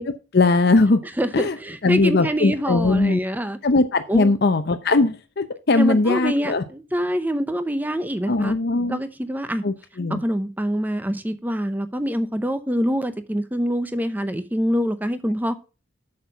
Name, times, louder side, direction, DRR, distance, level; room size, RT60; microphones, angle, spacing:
voice 1, 0.0-1.0 1.3-1.5 1.8-3.2 3.6-6.6 8.3-9.0 9.6-10.2, left 3 dB, 55° left, 8 dB, 0.7 m, -20 dB
voice 2, 1.2-3.6 4.1-4.3 5.7-8.6 8.9-9.6 10.1-15.5, equal, 10° right, 11 dB, 0.7 m, -25 dB
8.2 x 6.5 x 5.6 m, 0.32 s
head